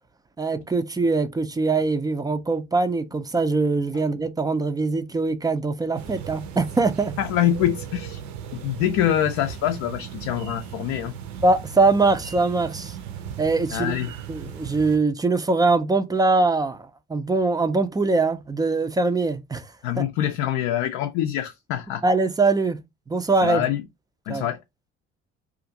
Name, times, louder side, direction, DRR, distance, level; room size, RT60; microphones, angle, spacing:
voice 1, 0.4-7.1 11.4-12.9 13.4-14.0 14.3-16.8 17.1-19.6 20.0-20.1 22.0-22.8 23.1-23.6 24.3-24.4, right 3 dB, 10° right, 0.4 m, -22 dB
sound 1, 5.9-15.0, right 8 dB, 60° right, 0.6 m, -37 dB
voice 2, 7.2-8.2 8.5-11.1 13.7-14.1 19.8-22.0 23.4-23.8 24.3-24.6, left 11 dB, 60° left, 0.5 m, -25 dB
2.4 x 2.4 x 2.6 m
hypercardioid pair, 55°, 33 cm